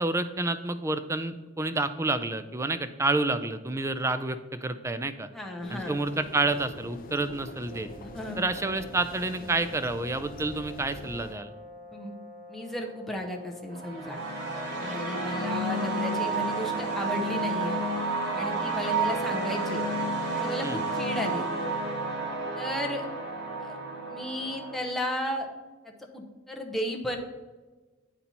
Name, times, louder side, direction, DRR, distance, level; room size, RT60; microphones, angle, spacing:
voice 1, 0.0-5.3 5.7-7.9 8.4-11.5 20.6-20.8, right 2 dB, 15° right, 11 dB, 0.3 m, -29 dB
voice 2, 5.3-6.0 8.0-8.4 11.9-12.1 12.5-14.2 14.8-17.8 18.3-19.8 20.3-21.5 22.6-23.0 23.6-23.8 24.1-25.5 25.8-27.2, left 1 dB, ahead, 0 dB, 0.8 m, -34 dB
sound 1, 5.6-11.3, left 3 dB, 45° left, 0.5 m, -44 dB
sound 2, 7.5-16.4, left 1 dB, 30° right, 1.1 m, -48 dB
sound 3, 13.7-24.8, right 2 dB, 60° right, 1.6 m, -30 dB
8.7 x 4.3 x 4.1 m, 1.3 s
head